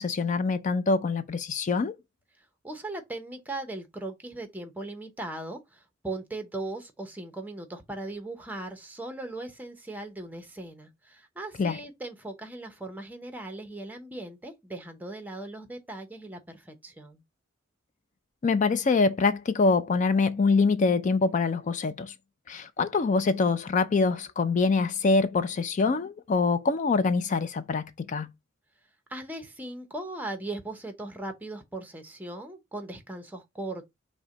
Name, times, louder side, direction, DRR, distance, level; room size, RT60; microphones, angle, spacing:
voice 1, 0.0-1.9 11.6-11.8 18.4-22.1 22.5-28.3, left 4 dB, 40° left, 0.4 m, -25 dB
voice 2, 2.6-17.2 29.1-33.9, right 2 dB, 10° right, 0.8 m, -38 dB
5.9 x 2.2 x 3.8 m
head